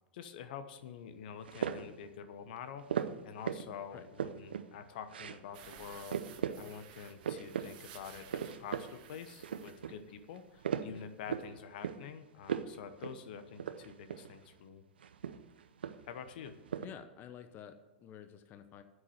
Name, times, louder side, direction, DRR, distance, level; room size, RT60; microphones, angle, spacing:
voice 1, 0.1-14.8 16.0-16.6, left 7 dB, 60° left, 10 dB, 1.0 m, -47 dB
sound 1, 1.4-2.0 2.9-3.7 4.0-4.7 5.1-5.4 5.7-5.8 6.1-6.6 7.0-7.7 8.0-8.9 9.2-9.9 10.4-11.5 11.8-12.1 12.4-12.8 13.0-13.2 13.5-14.3 15.0-16.2 16.4-16.9, right 8 dB, 80° right, 0.7 m, -37 dB
sound 2, 5.5-10.8 11.1-11.2 11.5-11.6, right 9 dB, 60° right, 1.5 m, -55 dB
voice 2, 16.8-18.8, left 9 dB, 35° left, 9 dB, 0.9 m, -50 dB
9.7 x 8.1 x 7.1 m, 1.2 s
hypercardioid pair, 100°, 5 cm